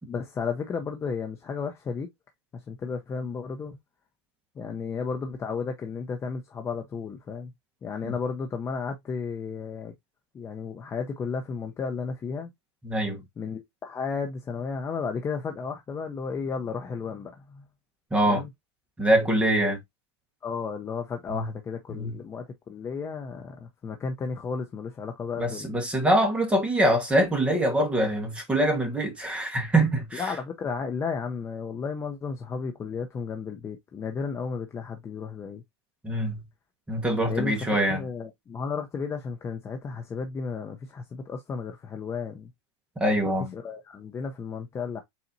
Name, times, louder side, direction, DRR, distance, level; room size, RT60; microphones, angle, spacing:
voice 1, 0.1-2.1 2.5-3.8 4.6-7.5 7.8-9.9 10.3-12.5 13.4-17.6 18.2-18.5 20.4-25.8 30.1-35.6 37.3-42.5 43.5-45.0, left 5 dB, 20° left, 0.6 m, -33 dB
voice 2, 12.8-13.2 18.1-18.5 19.0-19.8 21.3-21.5 21.9-22.2 25.4-30.3 36.0-36.4 36.9-38.1 43.0-43.6, right 1 dB, 10° right, 1.2 m, -24 dB
4.1 x 4.0 x 2.6 m
supercardioid pair, 135°, 15 cm